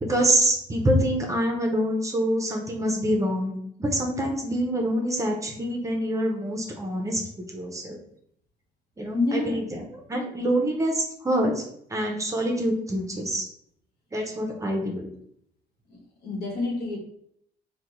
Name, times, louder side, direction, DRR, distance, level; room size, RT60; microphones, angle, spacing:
voice 1, 0.0-3.5 3.8-7.2 7.5-8.0 9.0-11.6 11.9-13.5 14.1-15.1, right 1 dB, 20° right, 1 dB, 0.6 m, -26 dB
voice 2, 9.1-9.6 15.9-17.0, left 2 dB, 70° left, -1 dB, 1.1 m, -28 dB
3.4 x 2.2 x 3.0 m, 0.69 s
cardioid pair, 110°, 17 cm